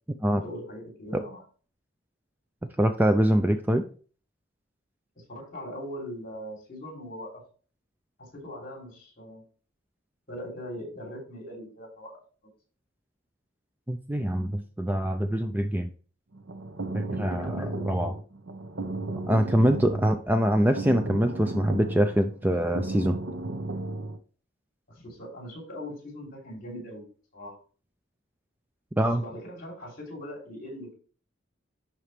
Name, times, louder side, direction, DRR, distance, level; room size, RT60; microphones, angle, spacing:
voice 1, 0.2-1.4 5.1-7.4 8.2-9.4 10.3-12.1 17.2-17.9 24.9-27.1 27.3-27.6 28.9-30.9, equal, 45° left, 0 dB, 3.2 m, -40 dB
voice 2, 2.8-3.8 13.9-15.9 16.9-18.1 19.3-23.2 29.0-29.2, right 1 dB, 10° right, 7 dB, 0.4 m, -24 dB
sound 1, 16.3-24.2, right 2 dB, 70° right, 0.9 m, -34 dB
11.0 x 4.3 x 3.3 m, 0.40 s
head